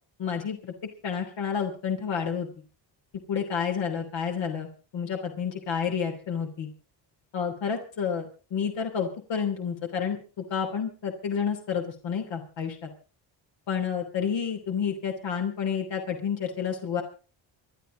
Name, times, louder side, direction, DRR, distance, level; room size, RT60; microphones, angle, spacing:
voice 1, 0.2-0.7 1.0-2.5 3.3-6.7 7.3-12.9 13.7-17.0, left 7 dB, 75° left, 3 dB, 3.2 m, -30 dB
27.0 x 11.0 x 3.9 m, 0.35 s
cardioid pair, 120°, 44 cm